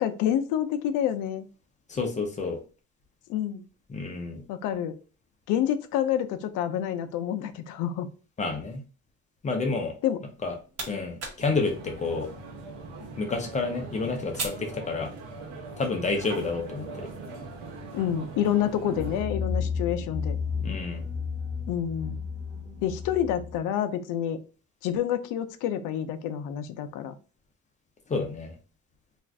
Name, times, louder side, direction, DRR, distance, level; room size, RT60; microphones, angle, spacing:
voice 1, 0.0-1.4 3.3-3.6 4.5-5.0 5.5-8.1 10.0-10.2 17.9-20.4 21.7-22.2 22.8-24.4 24.8-27.1, left 10 dB, 90° left, 9 dB, 0.5 m, -28 dB
voice 2, 1.9-2.6 3.9-4.4 8.4-8.8 9.4-9.9 10.4-10.5 10.9-12.3 13.2-15.1 15.8-17.1 20.6-21.1 28.1-28.5, left 4 dB, 25° left, 4 dB, 0.5 m, -29 dB
sound 1, 10.2-15.6, right 3 dB, 50° right, 1.0 m, -42 dB
sound 2, 11.4-19.2, right 3 dB, 80° right, 0.9 m, -41 dB
sound 3, 18.8-23.7, left 5 dB, ahead, 1.1 m, -32 dB
2.5 x 2.4 x 3.2 m, 0.35 s
cardioid pair, 150°, 30 cm